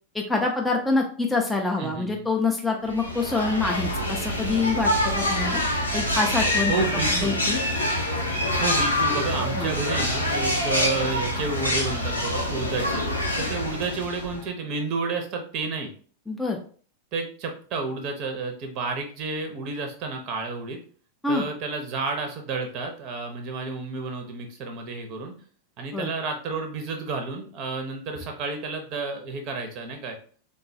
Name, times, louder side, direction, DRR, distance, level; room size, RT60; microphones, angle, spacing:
voice 1, 0.1-5.6 5.9-7.6 9.6-9.7 16.3-16.6 21.2-21.4 25.9-26.1, left 3 dB, 5° left, 0 dB, 0.4 m, -26 dB
voice 2, 1.8-2.3 6.7-7.4 8.6-13.0 13.4-15.9 17.1-20.8 21.3-25.3 25.8-30.2, right 4 dB, 40° right, 5 dB, 0.6 m, -31 dB
sound 1, 2.9-14.5, left 1 dB, 85° left, 0.6 m, -26 dB
3.6 x 2.2 x 2.6 m, 0.44 s
figure-of-eight pair, 90°, 0 cm